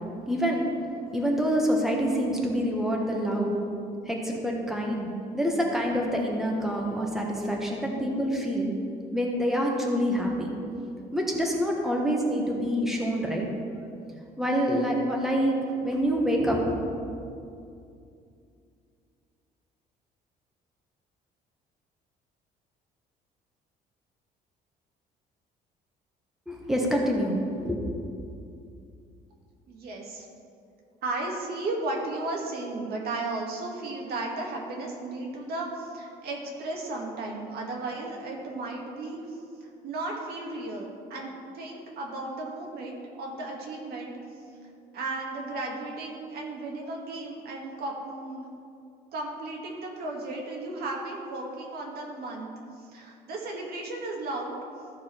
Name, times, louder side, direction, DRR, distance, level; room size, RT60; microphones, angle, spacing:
voice 1, 0.3-0.7 1.1-3.5 4.1-8.7 9.1-10.5 11.1-13.4 14.4-15.5 15.8-16.8 26.5-27.4 27.6-27.8, equal, ahead, -1 dB, 1.4 m, -26 dB
voice 2, 29.7-30.3 31.0-39.4 39.8-44.1 44.9-48.5 49.1-54.6, right 2 dB, 65° right, -1 dB, 1.8 m, -35 dB
14.5 x 4.9 x 4.5 m, 2.5 s
cardioid pair, 110°, 17 cm